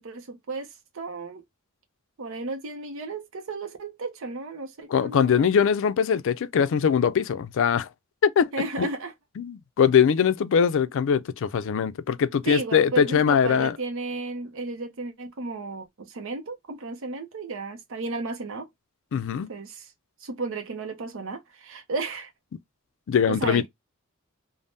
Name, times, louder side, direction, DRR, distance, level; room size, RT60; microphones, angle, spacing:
voice 1, 0.0-1.4 2.2-5.5 8.5-9.1 12.5-18.7 19.5-19.9 20.2-22.3 23.3-23.7, right 3 dB, 65° right, 0.6 m, -34 dB
voice 2, 4.9-7.9 8.2-8.5 8.8-8.9 9.4-13.8 19.1-19.5 23.1-23.7, left 7 dB, 65° left, 0.4 m, -22 dB
3.4 x 2.1 x 2.5 m
head